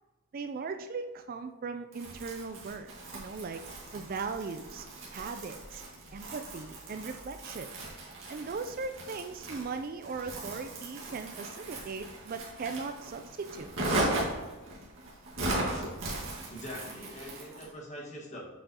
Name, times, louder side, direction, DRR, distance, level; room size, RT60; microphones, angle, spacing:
voice 1, 0.3-3.6 3.9-4.9 5.1-5.8 6.1-7.7 8.3-13.7, right 4 dB, 40° right, 8 dB, 0.3 m, -38 dB
Crumpling crinkling, 1.9-17.7, right 1 dB, 60° right, 2.0 m, -38 dB
voice 2, 16.5-18.5, equal, 30° left, -2 dB, 1.6 m, -43 dB
7.3 x 6.8 x 2.8 m, 1.3 s
head